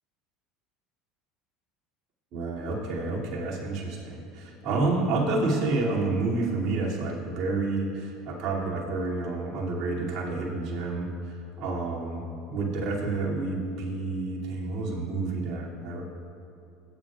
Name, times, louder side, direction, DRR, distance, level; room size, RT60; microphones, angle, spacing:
voice 1, 2.3-11.1 11.6-12.2 12.5-16.0, right 3 dB, 55° right, -5 dB, 2.5 m, -29 dB
17.5 x 8.5 x 2.4 m, 2.7 s
supercardioid pair, 90°, 0 cm